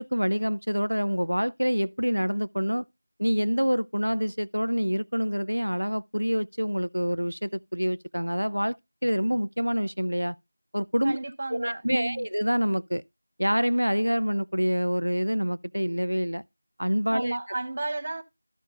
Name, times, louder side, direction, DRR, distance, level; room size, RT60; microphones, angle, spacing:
voice 1, 0.0-2.8 3.2-8.8 9.0-10.4 10.7-11.2 11.5-13.0 13.4-16.4 16.8-17.4, equal, 90° right, 0.5 m, -26 dB
voice 2, 11.0-12.3 17.1-18.2, right 2 dB, 35° right, 1.1 m, -32 dB
13.0 x 5.7 x 3.7 m
figure-of-eight pair, 170°, 0 cm